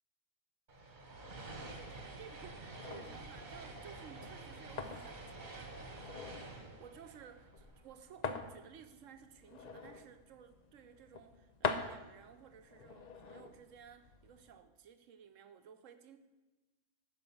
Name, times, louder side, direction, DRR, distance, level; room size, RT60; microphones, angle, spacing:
sound 1, 0.7-8.1, right 2 dB, 40° right, 1.4 m, -49 dB
voice 1, 1.6-16.2, right 8 dB, 75° right, 1.1 m, -56 dB
sound 2, 2.8-14.6, left 4 dB, 45° left, 0.6 m, -45 dB
9.8 x 5.4 x 7.1 m
omnidirectional pair, 1.4 m